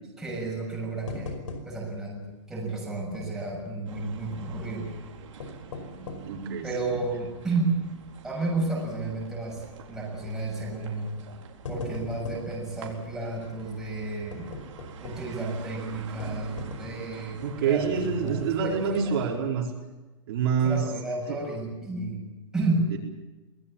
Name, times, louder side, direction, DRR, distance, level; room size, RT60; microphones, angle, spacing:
voice 1, 0.2-4.9 6.6-7.8 8.2-11.1 11.7-14.5 15.0-19.4 20.6-22.9, right 2 dB, ahead, -3 dB, 6.5 m, -32 dB
sound 1, 1.1-2.0 2.3-2.4 3.1-3.8 5.2-6.4 7.0-7.1 7.7-8.0 8.3-8.4 9.5-9.8 10.7-10.9 11.3-12.6 14.3-15.4 16.2-17.2 17.7-17.8 18.2-18.3, left 3 dB, 90° left, 5.2 m, -40 dB
Supermarket outside, 3.9-19.4, right 7 dB, 75° right, 4.2 m, -46 dB
voice 2, 6.2-6.7 17.4-19.7 20.3-20.8 21.3-21.4 22.9-23.0, right 6 dB, 50° right, -2 dB, 4.7 m, -26 dB
25.5 x 20.0 x 7.3 m, 1.1 s
hypercardioid pair, 170°, 16 cm